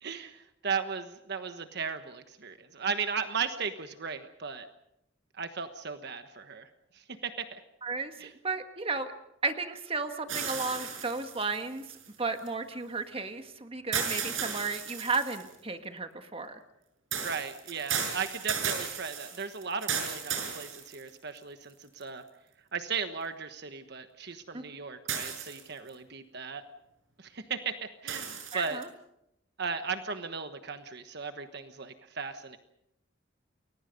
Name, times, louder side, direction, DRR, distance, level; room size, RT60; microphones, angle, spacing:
voice 1, 0.0-4.7 5.3-6.7 6.9-7.6 8.2-8.3 17.2-22.2 22.7-26.6 27.2-28.8 29.6-32.6, right 5 dB, 55° right, 8 dB, 1.3 m, -36 dB
voice 2, 7.8-9.1 9.4-16.6 24.5-24.6 28.5-28.9, right 3 dB, 30° right, 7 dB, 1.7 m, -34 dB
sound 1, 10.3-12.5 13.9-15.5 17.1-21.4 22.0-22.1 25.1-25.9 28.1-28.8, right 7 dB, 85° right, 6.5 m, -35 dB
30.0 x 22.0 x 5.3 m, 0.82 s
head